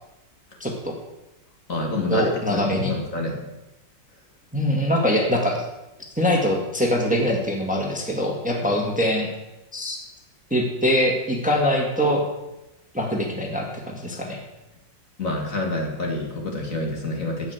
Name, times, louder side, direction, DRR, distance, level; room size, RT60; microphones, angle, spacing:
voice 1, 0.6-0.9 2.1-2.9 4.5-5.6 6.2-9.3 9.7-10.0 10.5-12.3 12.9-14.4, equal, 5° right, 0 dB, 1.9 m, -23 dB
voice 2, 1.7-3.4 15.2-17.5, left 2 dB, 45° left, 1 dB, 2.4 m, -27 dB
14.5 x 5.9 x 9.5 m, 0.98 s
omnidirectional pair, 1.9 m